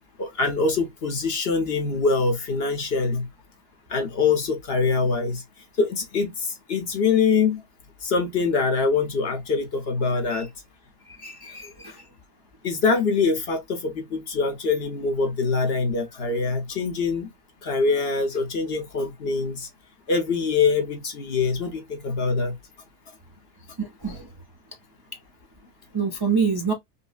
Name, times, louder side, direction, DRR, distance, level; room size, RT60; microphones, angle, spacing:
voice 1, 0.2-3.3 3.9-5.4 5.8-7.6 8.0-10.5 11.6-11.7 12.6-17.3 17.6-19.7 20.1-22.6, left 4 dB, 50° left, 0.9 m, -24 dB
voice 2, 11.1-12.0 23.8-24.2 25.9-26.7, right 5 dB, 35° right, 0.3 m, -27 dB
5.4 x 2.0 x 2.3 m
omnidirectional pair, 1.5 m